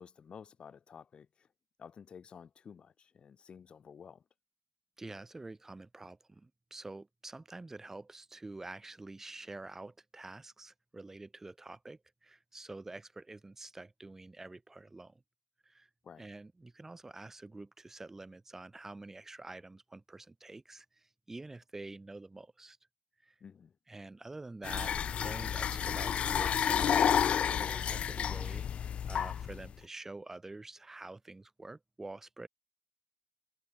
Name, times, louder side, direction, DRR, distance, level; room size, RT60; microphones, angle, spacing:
voice 1, 0.0-1.5 1.8-4.2 16.0-16.3 23.4-23.7, left 7 dB, 55° left, 3.3 m, -52 dB
voice 2, 5.0-15.2 15.6-15.9 16.2-22.8 23.2-23.4 23.9-32.5, right 2 dB, 20° right, 4.0 m, -48 dB
sound 1, 24.6-29.7, left 8 dB, 75° left, 0.9 m, -31 dB
wide cardioid pair, 135°, 2 cm